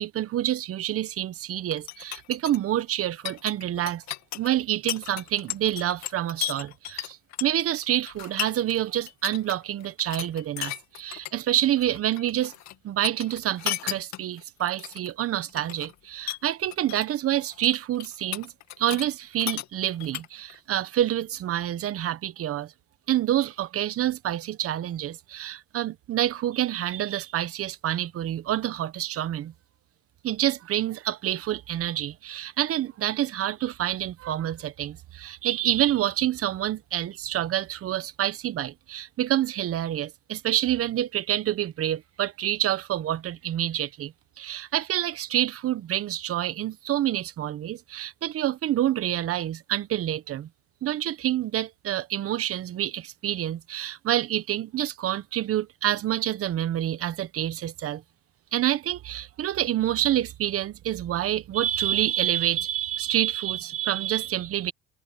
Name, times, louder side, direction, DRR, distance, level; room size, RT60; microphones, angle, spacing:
voice 1, 0.0-4.0 4.3-12.5 12.8-22.7 23.1-29.5 30.2-50.5 50.8-58.0 58.5-64.7, right 12 dB, 50° right, 1.1 m, -27 dB
sound 1, 1.7-8.8 9.1-9.5 9.8-11.3 11.6-12.7 13.0-15.1 15.5-15.9 16.3-17.1 17.4-19.1 19.4-20.6, left 15 dB, 70° left, 2.3 m, -35 dB
supercardioid pair, 90°, 29 cm